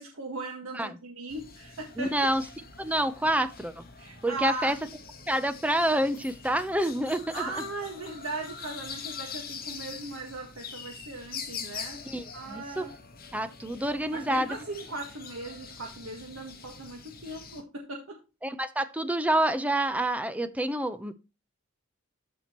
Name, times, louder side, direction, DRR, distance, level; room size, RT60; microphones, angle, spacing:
voice 1, 0.0-2.3 4.0-4.7 7.3-12.0 12.3-12.9 14.1-18.2, right 2 dB, 75° right, 1.7 m, -38 dB
sound 1, 1.3-17.6, left 6 dB, 45° left, 2.2 m, -44 dB
voice 2, 2.0-2.4 2.8-3.8 4.2-4.8 5.3-7.4 12.1-12.8 13.3-14.6 18.4-21.1, right 1 dB, 5° right, 0.7 m, -28 dB
13.5 x 4.9 x 3.0 m
head